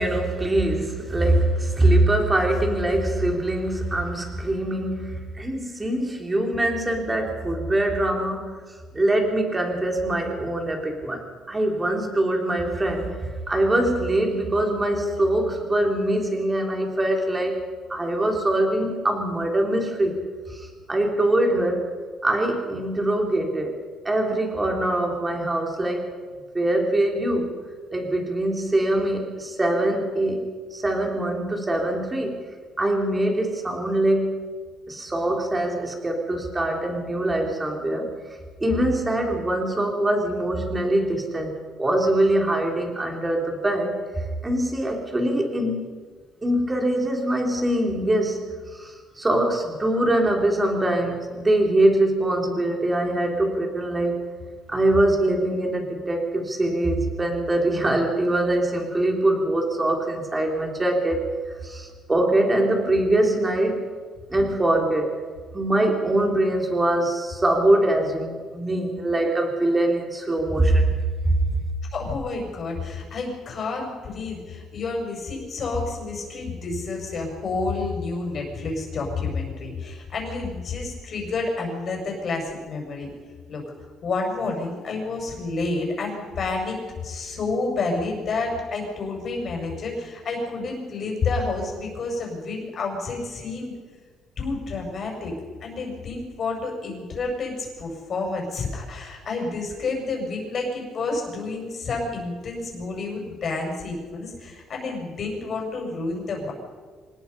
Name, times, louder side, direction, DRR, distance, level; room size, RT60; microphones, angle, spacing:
voice 1, 0.0-8.6 8.9-17.6 17.9-21.9 22.2-23.8 24.0-26.1 26.5-27.5 27.9-30.5 30.7-32.4 32.8-34.4 34.9-38.1 38.6-41.5 41.8-45.9 46.4-54.2 54.7-61.3 61.6-63.9 64.3-65.2 65.5-70.9 71.2-71.4, right 1 dB, 15° right, 2 dB, 3.7 m, -23 dB
voice 2, 71.9-83.1 83.5-83.6 84.0-93.7 94.4-95.4 95.6-106.5, left 3 dB, 40° left, 1 dB, 6.2 m, -29 dB
25.0 x 20.0 x 5.5 m, 1.5 s
cardioid pair, 140°, 0 cm